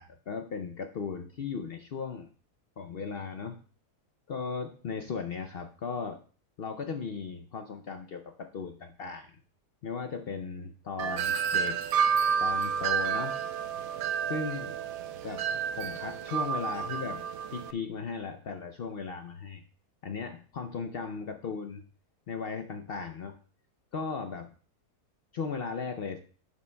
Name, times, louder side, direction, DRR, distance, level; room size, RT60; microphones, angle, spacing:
voice 1, 0.0-2.3 2.8-3.6 4.3-6.2 6.6-9.3 9.8-11.8 12.4-13.4 14.3-14.8 15.2-17.2 17.5-19.6 20.0-21.8 22.3-23.3 23.9-24.5 25.3-26.2, left 5 dB, 85° left, 6 dB, 0.5 m, -37 dB
Wind chime, 11.0-17.7, right 7 dB, 65° right, 1.0 m, -30 dB
11.5 x 8.3 x 2.2 m, 0.41 s
omnidirectional pair, 1.8 m